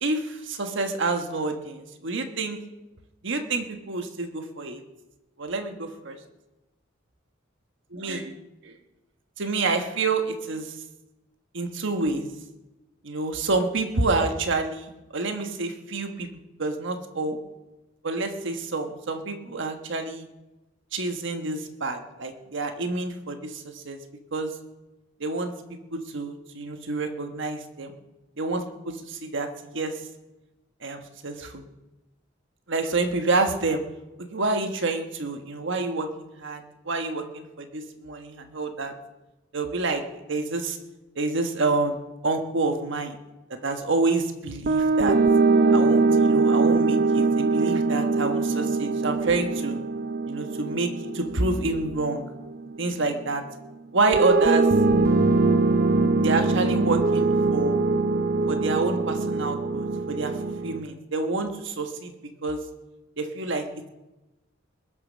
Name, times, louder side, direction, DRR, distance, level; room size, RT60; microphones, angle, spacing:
voice 1, 0.0-2.6 3.2-4.8 5.4-6.2 7.9-8.3 8.6-8.7 9.4-10.7 11.5-12.3 13.0-17.4 18.0-20.3 20.9-24.0 24.3-24.5 25.2-25.5 25.9-27.9 28.4-29.5 29.7-29.9 30.8-31.6 32.7-33.8 34.2-36.1 36.4-38.9 39.5-40.8 41.2-42.0 42.2-43.2 43.6-45.2 45.7-49.8 50.3-52.2 52.8-53.4 53.9-54.7 56.2-57.8 58.5-60.4 60.6-62.1 62.4-62.6 63.2-63.7, right 3 dB, 65° right, 6 dB, 1.3 m, -28 dB
sound 1, 44.7-52.8 54.1-60.8, right 3 dB, 50° right, 0.6 m, -22 dB
21.0 x 7.4 x 6.3 m, 1.0 s
head